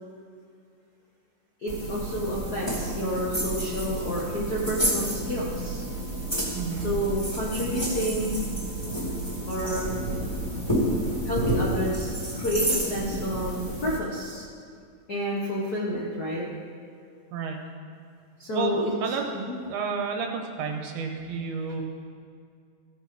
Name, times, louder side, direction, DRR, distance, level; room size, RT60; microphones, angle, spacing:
voice 1, 1.6-5.8 6.8-8.5 9.5-9.9 11.2-14.5 15.1-16.4 18.4-19.6, equal, 90° left, -5 dB, 0.8 m, -30 dB
sound 1, 1.7-14.0, right 1 dB, 10° left, 1.3 m, -30 dB
voice 2, 6.6-6.9 17.3-17.6 18.5-19.2 19.7-20.3 20.6-21.8, right 5 dB, 75° right, 3 dB, 2.3 m, -30 dB
15.5 x 5.3 x 4.7 m, 2.3 s
omnidirectional pair, 3.8 m